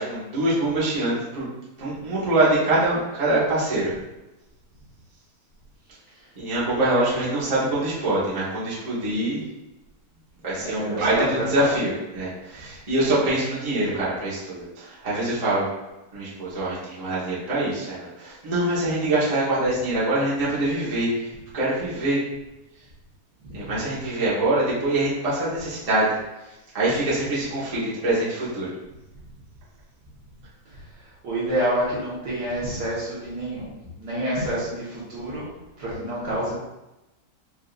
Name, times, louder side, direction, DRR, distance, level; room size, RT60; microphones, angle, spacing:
voice 1, 0.0-1.5 1.8-3.9 6.3-9.4 10.4-15.7 16.1-22.2 23.5-26.2 26.7-28.7, right 1 dB, 25° right, -9 dB, 1.1 m, -24 dB
voice 2, 10.6-11.7 23.4-23.6 31.2-35.4 35.8-36.5, right 1 dB, 70° right, -8 dB, 1.9 m, -28 dB
4.9 x 2.7 x 2.5 m, 0.99 s
omnidirectional pair, 1.9 m